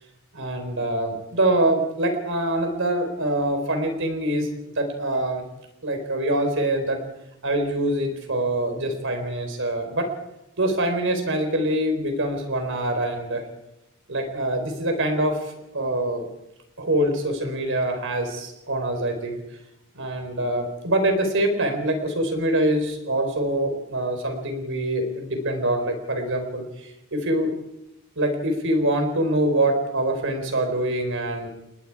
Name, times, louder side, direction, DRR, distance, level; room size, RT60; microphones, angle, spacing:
voice 1, 0.3-5.4 5.8-7.0 7.4-10.1 10.6-13.5 14.1-16.2 16.8-19.4 19.9-27.5 28.2-31.5, right 1 dB, 60° right, 6 dB, 4.3 m, -24 dB
30.0 x 19.5 x 4.9 m, 0.85 s
head